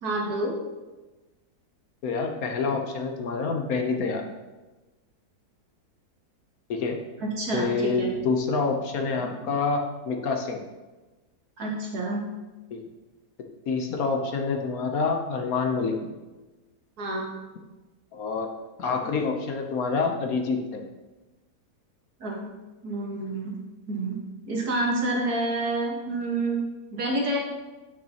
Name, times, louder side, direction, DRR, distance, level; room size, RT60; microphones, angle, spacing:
voice 1, 0.0-0.6 7.2-8.1 11.6-12.3 17.0-17.3 22.2-22.5 22.8-23.6 23.9-26.6 26.9-27.4, right 2 dB, 70° right, -2 dB, 1.9 m, -28 dB
voice 2, 2.0-4.3 6.7-7.0 7.5-10.6 12.7-12.8 13.7-16.0 18.1-18.5 18.8-20.8, left 4 dB, 65° left, 3 dB, 1.2 m, -27 dB
8.8 x 6.2 x 2.9 m, 1.2 s
omnidirectional pair, 1.7 m